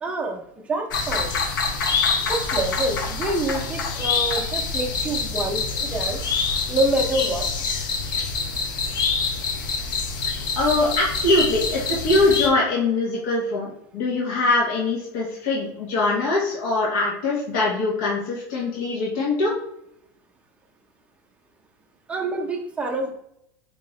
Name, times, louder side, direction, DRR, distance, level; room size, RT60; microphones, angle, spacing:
voice 1, 0.0-1.3 2.2-6.2 6.7-7.5 22.1-23.1, right 2 dB, 10° right, 0 dB, 0.6 m, -26 dB
sound 1, 0.9-12.5, left 4 dB, 85° left, 0.8 m, -26 dB
voice 2, 10.6-19.5, left 2 dB, 70° left, -5 dB, 1.2 m, -22 dB
3.7 x 2.9 x 3.0 m, 0.74 s
supercardioid pair, 130°, 10 cm